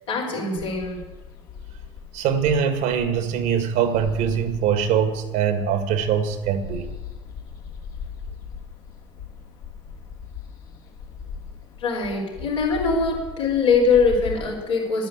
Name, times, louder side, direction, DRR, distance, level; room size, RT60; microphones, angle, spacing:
voice 1, 0.1-1.0 11.8-15.1, left 4 dB, 80° left, -4 dB, 4.9 m, -22 dB
sound 1, 0.6-14.5, left 6 dB, 65° left, 2.7 m, -39 dB
voice 2, 2.1-6.9, right 7 dB, 60° right, 9 dB, 1.9 m, -22 dB
10.5 x 10.5 x 8.7 m, 1.2 s
figure-of-eight pair, 60°, 15 cm